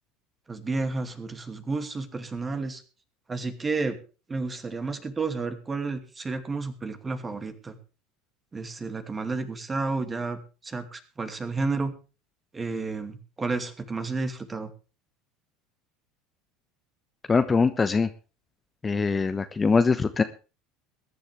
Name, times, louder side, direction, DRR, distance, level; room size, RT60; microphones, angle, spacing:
voice 1, 0.5-2.8 3.3-4.0 4.3-7.8 8.5-11.9 12.5-14.7, right 3 dB, 20° right, 9 dB, 2.6 m, -31 dB
voice 2, 17.3-18.1 18.8-20.2, left 4 dB, 20° left, 10 dB, 1.1 m, -22 dB
22.0 x 11.0 x 3.5 m, 0.34 s
figure-of-eight pair, 70°, 0 cm